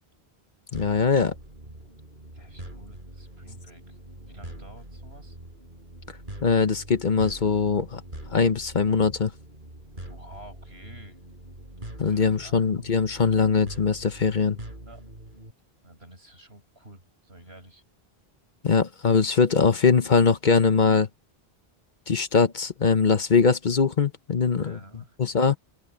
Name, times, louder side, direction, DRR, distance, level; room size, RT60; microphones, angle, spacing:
voice 1, 0.7-1.3 6.4-8.0 8.3-9.3 12.0-14.6 18.6-21.1 22.1-24.8 25.2-25.6, left 5 dB, 50° left, 1.1 m, -21 dB
sound 1, 0.7-15.5, right 1 dB, 55° right, 6.9 m, -43 dB
voice 2, 1.6-2.1 2.3-5.4 10.0-11.2 11.9-12.6 14.9-15.0 15.8-17.8 24.4-25.2, right 1 dB, 85° right, 8.1 m, -50 dB
omnidirectional pair, 1.0 m